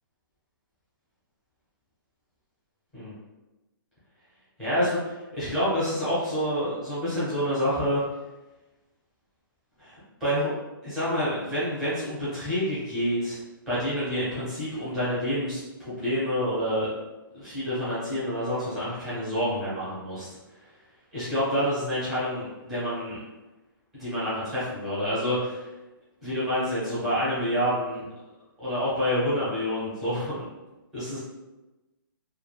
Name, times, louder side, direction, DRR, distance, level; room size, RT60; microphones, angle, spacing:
voice 1, 4.6-8.0 9.8-10.5 10.8-13.4 13.7-15.6 15.9-16.9 17.3-20.3 21.1-23.2 23.9-25.7 26.2-28.0 28.6-30.5 30.9-31.2, equal, 5° right, -14 dB, 0.8 m, -28 dB
2.6 x 2.5 x 2.3 m, 1.1 s
hypercardioid pair, 180°, 12 cm